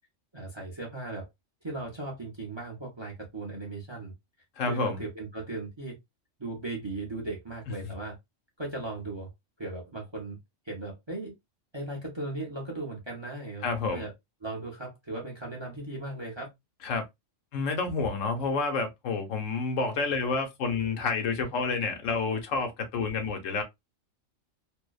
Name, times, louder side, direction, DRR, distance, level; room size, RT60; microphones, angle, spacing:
voice 1, 0.3-1.3 1.6-4.1 4.7-6.0 6.4-8.2 8.6-9.3 9.6-10.4 10.7-11.3 11.7-13.7 13.9-14.1 14.4-16.5 21.4-21.5, right 2 dB, 30° right, 0.5 m, -37 dB
voice 2, 4.6-5.0 7.8-7.9 13.6-14.1 16.8-17.0 17.5-23.6, left 4 dB, 80° left, 1.1 m, -29 dB
2.6 x 2.0 x 2.2 m
omnidirectional pair, 1.3 m